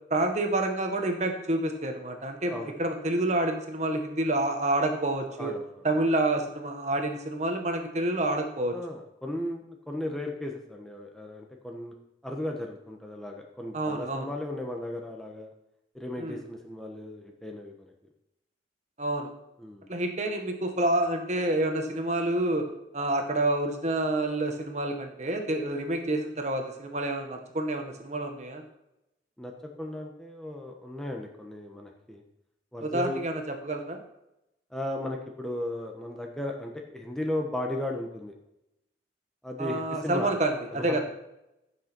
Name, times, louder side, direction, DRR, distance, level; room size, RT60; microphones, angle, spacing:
voice 1, 0.1-5.5 5.8-8.8 13.7-14.2 16.2-16.4 19.0-19.3 19.9-22.6 22.9-28.6 32.8-34.0 39.6-41.0, right 1 dB, 40° right, 4 dB, 1.5 m, -28 dB
voice 2, 5.4-5.8 8.7-11.9 12.2-15.5 15.9-17.9 19.6-19.9 29.4-29.5 29.8-32.2 32.7-33.2 34.7-38.3 39.4-40.3 40.7-41.0, left 1 dB, 5° left, 1 dB, 1.1 m, -36 dB
15.5 x 6.5 x 4.5 m, 0.88 s
head